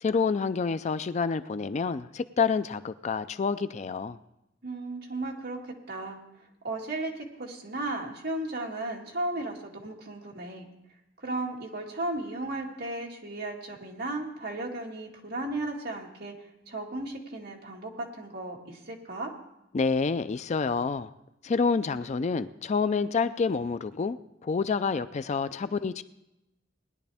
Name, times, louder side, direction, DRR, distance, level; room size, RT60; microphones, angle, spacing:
voice 1, 0.0-4.2 19.7-21.1 21.4-26.0, left 5 dB, 35° left, 13 dB, 0.4 m, -28 dB
voice 2, 4.6-5.6 5.9-6.2 6.6-10.7 11.2-16.3 16.7-19.3, right 2 dB, 55° right, 0 dB, 2.1 m, -35 dB
19.5 x 11.0 x 3.5 m, 0.90 s
head